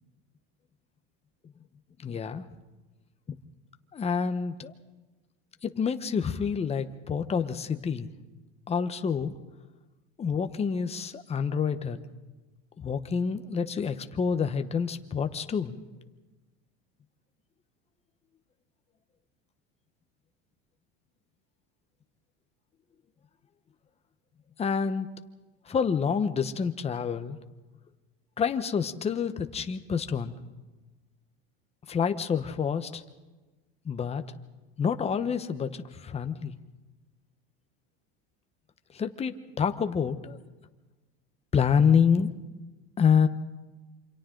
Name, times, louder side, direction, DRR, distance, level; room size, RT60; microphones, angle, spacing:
voice 1, 2.0-2.4 3.9-4.7 5.6-8.1 8.7-9.3 10.2-12.0 12.8-15.8 24.6-25.1 25.7-27.4 28.4-30.3 31.9-33.0 33.8-34.2 34.8-36.5 38.9-40.4 41.5-42.3 43.0-43.3, left 6 dB, 20° left, 8 dB, 1.1 m, -27 dB
28.0 x 26.0 x 3.9 m, 1.2 s
cardioid pair, 145°, 33 cm